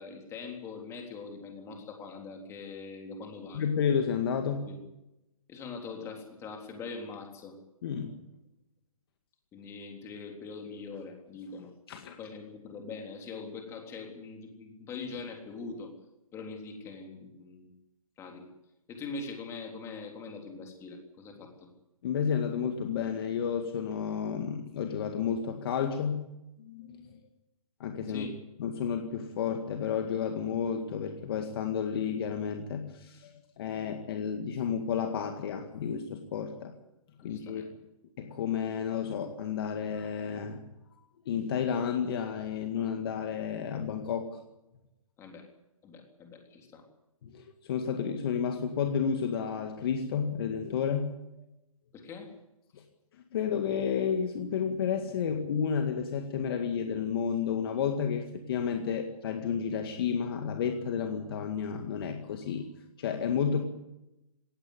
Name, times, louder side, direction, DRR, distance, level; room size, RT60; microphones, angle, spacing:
voice 1, 0.0-3.7 4.7-4.8 5.5-7.5 9.5-11.7 12.2-15.9 16.3-17.7 18.2-18.5 18.9-21.7 28.1-28.3 37.2-37.7 45.2-45.5 45.8-46.8 51.9-52.3, left 4 dB, 15° left, 3 dB, 3.6 m, -42 dB
voice 2, 3.5-4.6 7.8-8.2 11.9-12.2 22.0-26.2 26.6-27.2 27.8-28.3 28.6-36.7 37.2-37.6 38.2-40.6 41.3-44.4 47.2-51.1 52.7-52.8 53.3-62.7 63.0-63.6, left 7 dB, 40° left, 5 dB, 2.0 m, -31 dB
18.5 x 17.0 x 9.8 m, 0.91 s
figure-of-eight pair, 145°, 19 cm